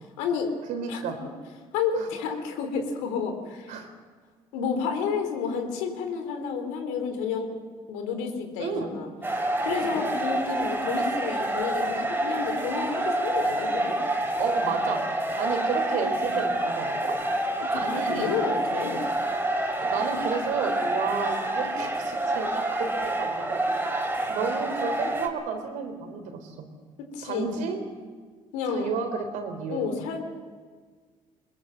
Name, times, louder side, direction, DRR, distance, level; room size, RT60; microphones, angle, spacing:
voice 1, 0.2-0.5 0.9-1.0 1.7-3.8 4.5-7.6 7.9-9.1 9.6-14.0 17.6-19.0 27.1-27.6 28.5-28.9 29.7-30.2, left 6 dB, 85° left, 5 dB, 3.7 m, -30 dB
voice 2, 0.7-1.2 2.0-2.1 3.7-3.9 8.6-8.9 9.8-10.0 14.4-15.0 15.4-17.2 17.8-18.3 19.8-26.6 27.2-27.8 28.7-29.8, right 5 dB, 75° right, 6 dB, 3.9 m, -32 dB
sound 1, 9.2-25.3, right 1 dB, 15° right, 4.2 m, -28 dB
21.0 x 21.0 x 7.6 m, 1.5 s
supercardioid pair, 65°, 13 cm